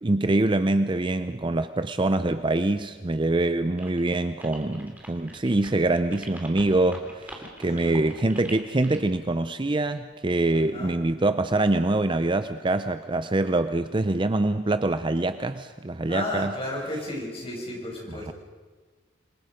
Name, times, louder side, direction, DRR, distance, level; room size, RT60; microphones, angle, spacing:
voice 1, 0.0-16.5 18.1-18.3, right 2 dB, 25° right, 11 dB, 0.5 m, -25 dB
sound 1, 3.8-9.2, right 1 dB, 10° right, 3.0 m, -44 dB
voice 2, 7.7-8.0 10.7-10.9 16.1-18.3, left 1 dB, 30° left, -2 dB, 6.0 m, -33 dB
27.0 x 21.5 x 5.1 m, 1.4 s
head